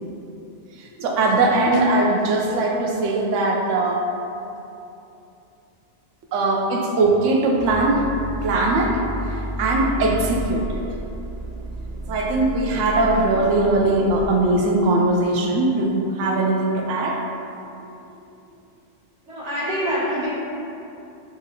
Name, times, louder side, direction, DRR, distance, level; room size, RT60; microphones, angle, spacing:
voice 1, 0.8-4.1 6.3-8.1 8.4-9.0 9.3-11.0 12.1-17.2, right 2 dB, 90° right, 0 dB, 0.9 m, -20 dB
sound 1, 7.5-14.3, equal, 45° right, 0.6 m, -32 dB
voice 2, 19.3-20.3, equal, 75° right, -10 dB, 1.3 m, -25 dB
5.9 x 2.6 x 2.7 m, 2.8 s
omnidirectional pair, 1.2 m